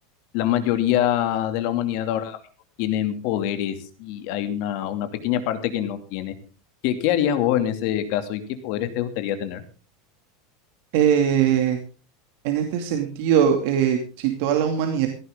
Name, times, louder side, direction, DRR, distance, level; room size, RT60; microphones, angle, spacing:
voice 1, 0.3-2.4 2.8-6.3 6.8-9.6, left 11 dB, 50° left, 9 dB, 2.6 m, -25 dB
voice 2, 10.9-11.8 12.4-15.1, right 9 dB, 55° right, 4 dB, 2.5 m, -21 dB
17.5 x 15.0 x 3.7 m, 0.36 s
supercardioid pair, 175°, 0 cm